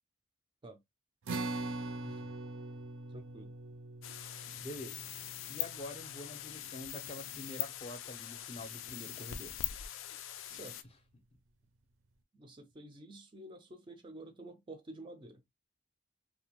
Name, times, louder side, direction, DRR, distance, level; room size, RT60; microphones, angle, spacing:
sound 1, 1.3-7.9, right 2 dB, 90° right, 0.5 m, -43 dB
voice 1, 3.1-3.5 10.5-10.8 12.3-15.4, right 1 dB, 25° right, 0.3 m, -50 dB
sound 2, 4.0-10.8, left 12 dB, 85° left, 0.3 m, -42 dB
voice 2, 4.6-5.1 5.5-9.6, left 1 dB, 30° left, 0.5 m, -46 dB
2.5 x 2.2 x 2.9 m
head